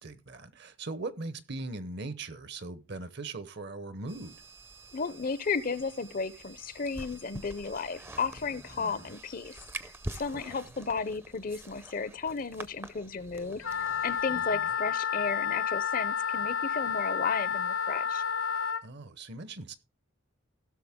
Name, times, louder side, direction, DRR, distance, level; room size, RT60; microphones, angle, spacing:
voice 1, 0.0-4.4 8.8-9.1 10.3-10.6 14.3-14.7 18.8-19.7, right 3 dB, 55° right, 0.9 m, -40 dB
sound 1, 4.1-14.5, right 2 dB, 10° right, 0.5 m, -46 dB
voice 2, 4.9-9.6 10.1-13.6 14.0-18.2, left 4 dB, 40° left, 0.5 m, -34 dB
Wind instrument woodwind instrument, 13.6-18.8, left 7 dB, 75° left, 0.7 m, -30 dB
16.5 x 6.5 x 3.6 m
head